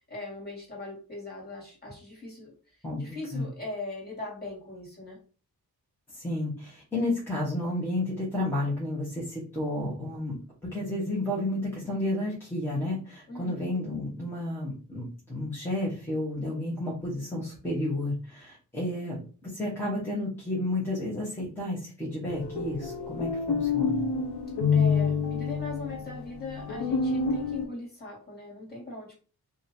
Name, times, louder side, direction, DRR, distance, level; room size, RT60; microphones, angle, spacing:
voice 1, 0.1-2.5 3.0-5.2 13.3-13.7 24.7-29.1, left 2 dB, 25° left, -4 dB, 1.9 m, -40 dB
voice 2, 2.8-3.5 6.1-10.4 10.7-24.0, left 1 dB, 5° left, -7 dB, 1.0 m, -31 dB
sound 1, 22.3-27.7, left 5 dB, 90° left, 0.7 m, -28 dB
2.9 x 2.5 x 4.1 m, 0.38 s
wide cardioid pair, 155°, 38 cm